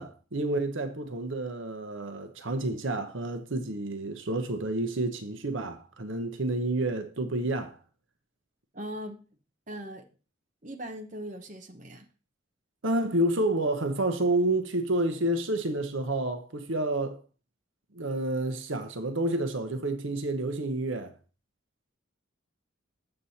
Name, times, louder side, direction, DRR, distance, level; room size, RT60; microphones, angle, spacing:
voice 1, 0.0-7.8 12.8-17.2 17.9-21.1, right 1 dB, 70° right, 1.0 m, -29 dB
voice 2, 8.7-9.2 9.7-10.0 10.6-12.0, equal, 40° right, 1.0 m, -39 dB
7.9 x 7.5 x 4.2 m
head